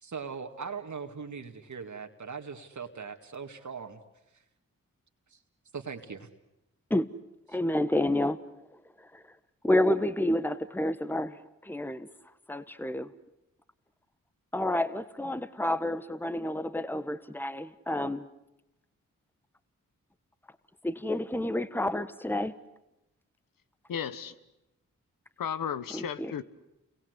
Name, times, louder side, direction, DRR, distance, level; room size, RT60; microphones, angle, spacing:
voice 1, 0.0-4.0 5.3-5.4 5.7-6.3, right 5 dB, 60° right, 2.2 m, -40 dB
voice 2, 7.5-8.4 9.1-9.2 9.6-12.1 12.5-13.1 14.5-18.3 20.8-22.5 25.9-26.3, left 1 dB, 5° left, 1.3 m, -29 dB
voice 3, 23.9-24.3 25.4-26.4, left 8 dB, 80° left, 1.3 m, -34 dB
29.5 x 23.0 x 8.2 m
supercardioid pair, 40°, 33 cm